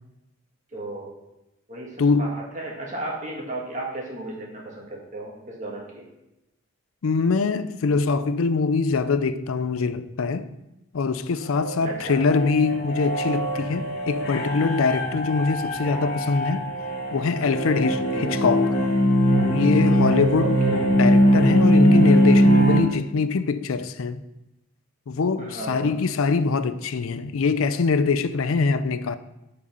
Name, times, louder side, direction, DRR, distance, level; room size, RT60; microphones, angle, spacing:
voice 1, 0.7-1.1 1.7-1.9 2.2-6.0 11.8-12.3 18.1-18.4 20.4-21.0 25.4-26.0, right 2 dB, 35° right, 1.7 m, -34 dB
voice 2, 2.0-2.3 7.0-10.5 10.9-16.7 17.1-18.8 19.5-20.7 20.9-24.2 25.1-29.2, left 4 dB, 85° left, 0.5 m, -23 dB
sound 1, 11.5-22.8, equal, 50° left, 2.0 m, -21 dB
6.9 x 5.2 x 5.3 m
head